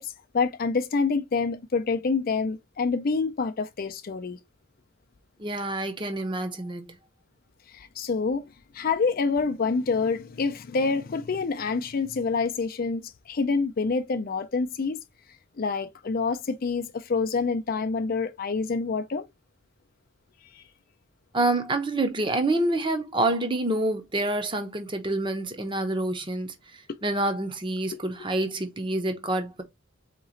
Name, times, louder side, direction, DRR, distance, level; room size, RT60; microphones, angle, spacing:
voice 1, 0.0-4.4 7.7-15.0 15.6-19.3 20.5-20.6, left 4 dB, 45° left, 0.4 m, -27 dB
voice 2, 5.4-6.9 21.3-29.6, right 2 dB, 25° right, 0.7 m, -27 dB
4.0 x 3.0 x 3.8 m
head